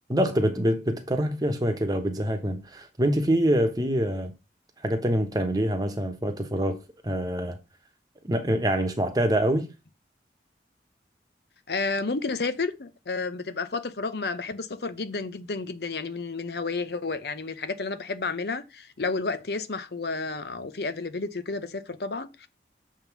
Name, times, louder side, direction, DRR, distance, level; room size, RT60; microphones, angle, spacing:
voice 1, 0.1-4.3 4.8-6.8 7.0-7.6 8.2-9.7, equal, 20° right, 1.0 m, -25 dB
voice 2, 11.7-22.5, left 3 dB, 65° left, 0.7 m, -31 dB
7.3 x 3.7 x 5.9 m
head